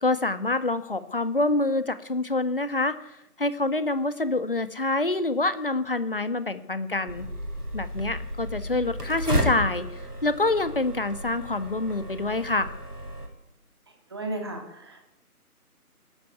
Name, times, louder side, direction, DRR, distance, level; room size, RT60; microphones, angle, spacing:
voice 1, 0.0-7.3 7.7-12.7, left 2 dB, 35° left, 12 dB, 1.6 m, -26 dB
sound 1, 7.1-13.3, equal, 80° right, 6.7 m, -32 dB
voice 2, 14.1-15.0, right 2 dB, 15° right, 4 dB, 2.4 m, -34 dB
19.0 x 14.0 x 9.6 m, 0.84 s
figure-of-eight pair, 165°, 46 cm